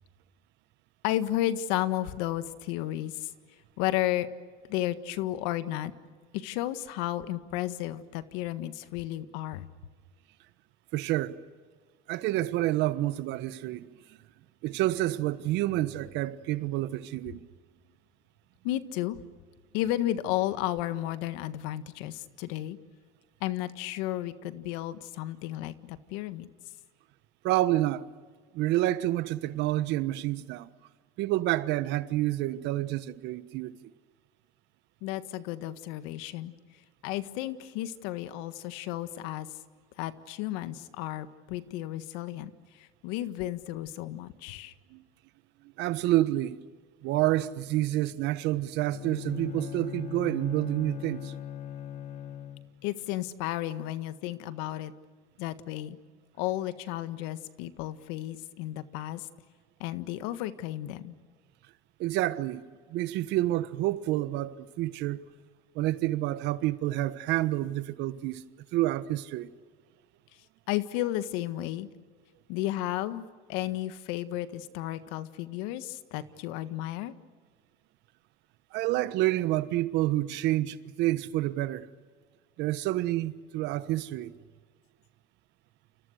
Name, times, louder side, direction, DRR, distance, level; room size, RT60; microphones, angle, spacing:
voice 1, 1.0-3.3 3.8-4.3 4.7-5.9 6.3-9.7 18.6-19.2 19.7-22.8 23.4-26.5 35.0-36.5 37.0-39.5 40.0-44.7 52.8-54.9 55.4-56.0 56.4-59.3 59.8-61.1 70.7-71.9 72.5-77.1, left 14 dB, 80° left, 1.6 m, -33 dB
voice 2, 10.9-11.4 12.1-13.9 14.6-17.5 27.4-28.0 28.5-30.7 31.2-33.8 44.9-45.0 45.8-46.6 47.0-51.3 62.0-62.6 62.9-65.2 65.7-68.4 68.7-69.5 78.7-81.9 82.6-84.4, right 15 dB, 70° right, 1.3 m, -28 dB
Bowed string instrument, 48.8-52.9, left 10 dB, 40° left, 1.1 m, -39 dB
29.5 x 29.0 x 6.5 m
supercardioid pair, 95°, 19 cm